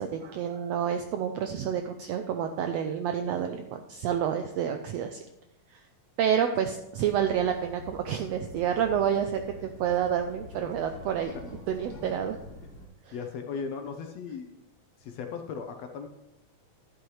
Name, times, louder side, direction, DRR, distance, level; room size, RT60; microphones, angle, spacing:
voice 1, 0.0-5.2 5.7-5.8 6.2-11.3 11.7-12.4 13.1-13.2, right 8 dB, 90° right, 6 dB, 1.4 m, -29 dB
sound 1, 7.0-12.9, left 2 dB, 50° left, 2.9 m, -46 dB
voice 2, 13.1-14.5 15.0-16.1, left 5 dB, 70° left, 5 dB, 1.7 m, -37 dB
11.5 x 11.0 x 3.2 m, 0.89 s
omnidirectional pair, 3.5 m